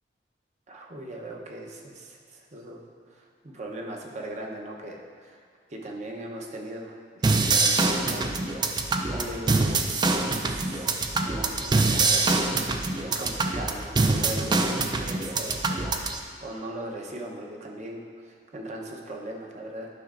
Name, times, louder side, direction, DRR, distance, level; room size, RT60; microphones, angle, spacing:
voice 1, 0.7-2.8 3.1-5.4 5.7-8.4 8.7-9.7 10.1-12.6 13.0-19.9, right 1 dB, 40° right, 0 dB, 0.8 m, -39 dB
sound 1, 7.2-16.2, right 3 dB, 25° right, 0.4 m, -25 dB
10.5 x 5.6 x 2.5 m, 2.1 s
head